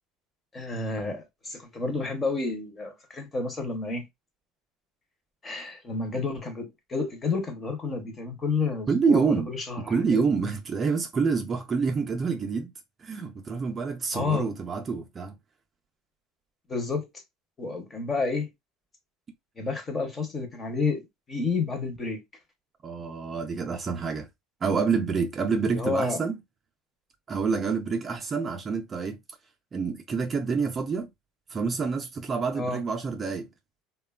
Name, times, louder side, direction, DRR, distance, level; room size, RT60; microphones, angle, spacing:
voice 1, 0.5-4.1 5.4-9.8 10.1-10.2 14.1-14.5 16.7-17.1 17.6-18.5 19.6-22.2 25.7-26.2 32.6-32.8, left 4 dB, 20° left, 0.6 m, -30 dB
voice 2, 8.9-9.5 9.8-12.7 13.0-15.4 22.8-24.3 24.6-26.4 27.3-29.2 29.7-31.1 31.5-33.5, right 5 dB, 25° right, 0.4 m, -27 dB
3.0 x 2.1 x 2.2 m
cardioid pair, 145°, 0 cm